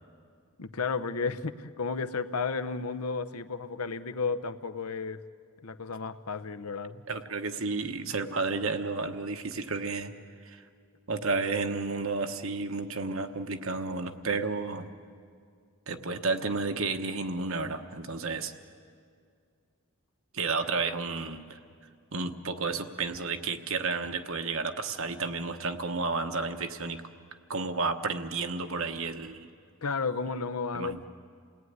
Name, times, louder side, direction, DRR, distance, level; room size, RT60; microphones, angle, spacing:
voice 1, 0.6-5.2 5.6-7.0 29.8-31.1, left 4 dB, 85° left, 12 dB, 0.9 m, -33 dB
voice 2, 7.1-10.1 10.4-10.6 11.1-14.9 15.9-18.5 20.3-21.6 22.1-27.0 27.5-29.5 30.7-31.0, right 4 dB, 70° right, 7 dB, 1.3 m, -31 dB
28.5 x 18.5 x 9.6 m, 2.2 s
head